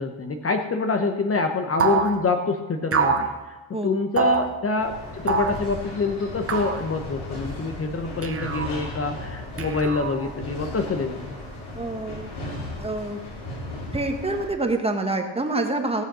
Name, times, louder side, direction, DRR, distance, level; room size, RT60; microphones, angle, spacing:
voice 1, 0.0-3.6 3.8-11.4, left 3 dB, 30° left, 5 dB, 0.9 m, -26 dB
sound 1, 1.8-2.1 2.9-3.3 4.2-4.5 5.3-5.6 6.5-6.8 8.2-8.7 9.6-10.3, right 5 dB, 30° right, 1.3 m, -24 dB
sound 2, 4.8-14.5, left 1 dB, 80° left, 5.2 m, -36 dB
voice 2, 11.7-12.3 12.8-13.2 13.9-16.0, right 2 dB, 10° right, 3 dB, 1.3 m, -26 dB
16.5 x 6.4 x 6.1 m, 1.2 s
cardioid pair, 115°, 48 cm